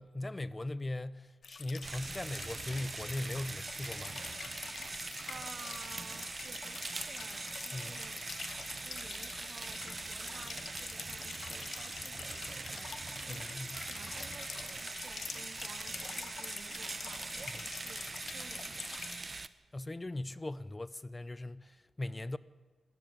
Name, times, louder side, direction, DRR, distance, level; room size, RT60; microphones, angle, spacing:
voice 1, 0.0-4.2 7.7-8.0 13.3-13.8 19.7-22.4, left 2 dB, 25° left, 0.9 m, -39 dB
sound 1, 1.4-19.2, left 5 dB, 65° left, 1.8 m, -46 dB
sound 2, 1.8-19.5, right 3 dB, 40° right, 1.0 m, -42 dB
voice 2, 4.8-8.3 8.8-19.1, right 5 dB, 60° right, 1.4 m, -54 dB
21.0 x 14.0 x 9.7 m
cardioid pair, 55°, 0 cm